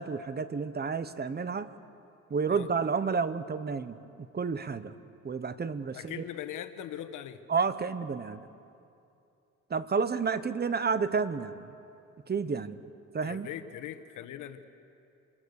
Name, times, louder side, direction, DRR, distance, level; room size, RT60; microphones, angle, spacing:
voice 1, 0.0-1.7 2.3-4.0 4.3-4.9 5.2-6.2 7.5-8.5 9.7-11.7 12.3-12.8 13.1-13.5, right 5 dB, 35° right, 13 dB, 1.0 m, -30 dB
voice 2, 5.9-7.4 13.2-14.6, left 11 dB, 85° left, 10 dB, 1.2 m, -40 dB
27.0 x 21.0 x 6.6 m, 2.7 s
cardioid pair, 90°, 30 cm